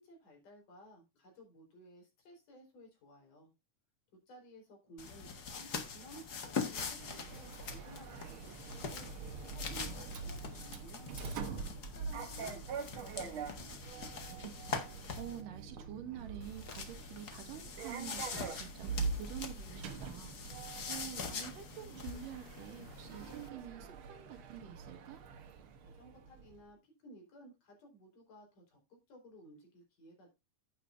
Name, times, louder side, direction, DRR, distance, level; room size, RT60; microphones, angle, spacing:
voice 1, 0.0-3.5 4.1-9.1 9.5-11.1 11.4-12.9 25.8-30.3, right 1 dB, 70° left, 5.6 m, -57 dB
sound 1, 5.0-15.4 16.4-23.5, left 5 dB, 50° left, 1.2 m, -44 dB
Sliding door, 7.0-26.6, right 5 dB, 65° right, 1.3 m, -44 dB
voice 2, 14.3-18.9 19.2-20.4 20.9-25.2, right 10 dB, 85° right, 3.1 m, -48 dB
11.0 x 8.9 x 2.5 m
omnidirectional pair, 3.8 m